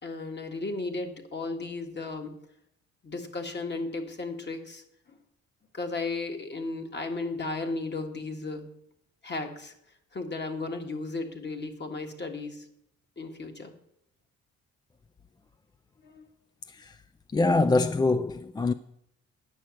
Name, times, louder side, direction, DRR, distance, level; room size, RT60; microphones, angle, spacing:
voice 1, 0.0-2.4 3.0-4.8 5.7-8.7 9.2-9.7 10.1-12.7 13.2-13.7 16.0-16.3, left 3 dB, 35° left, 1.8 m, -35 dB
voice 2, 16.7-17.0 17.3-18.7, left 3 dB, 15° left, 0.3 m, -24 dB
9.9 x 6.4 x 7.4 m
cardioid pair, 90°, 30 cm